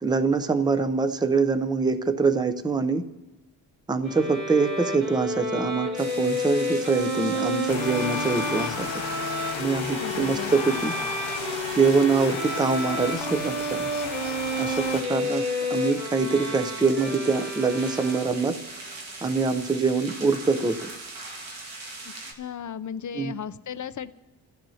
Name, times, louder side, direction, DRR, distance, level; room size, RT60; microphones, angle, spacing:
voice 1, 0.0-3.0 3.9-8.9 9.5-10.9 11.7-13.9 14.6-15.4 15.7-18.5 19.2-20.9 23.2-23.3, right 4 dB, 10° right, 9 dB, 0.5 m, -24 dB
Bowed string instrument, 4.1-18.6, equal, 35° right, 2.5 m, -31 dB
sound 1, 5.9-22.3, right 3 dB, 85° right, 2.0 m, -40 dB
sound 2, 7.7-15.0, left 9 dB, 75° left, 0.8 m, -35 dB
voice 2, 10.0-10.5 22.0-24.1, left 8 dB, 45° left, 13 dB, 0.5 m, -35 dB
28.0 x 15.0 x 2.8 m, 1.0 s
wide cardioid pair, 160°, 45 cm